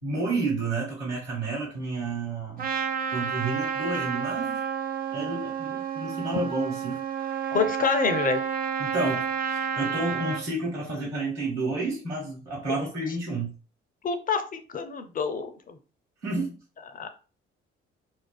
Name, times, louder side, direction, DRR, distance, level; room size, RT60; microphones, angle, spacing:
voice 1, 0.0-2.7 3.1-4.6 5.1-7.0 8.8-13.5 16.2-16.6, right 2 dB, 85° right, -4 dB, 1.1 m, -30 dB
Trumpet, 2.6-10.4, right 7 dB, 30° right, 0.5 m, -30 dB
voice 2, 7.5-8.4 12.7-12.8 14.0-15.8 16.9-17.1, left 5 dB, 30° left, 8 dB, 0.4 m, -27 dB
2.4 x 2.3 x 2.2 m, 0.36 s
figure-of-eight pair, 45°, 31 cm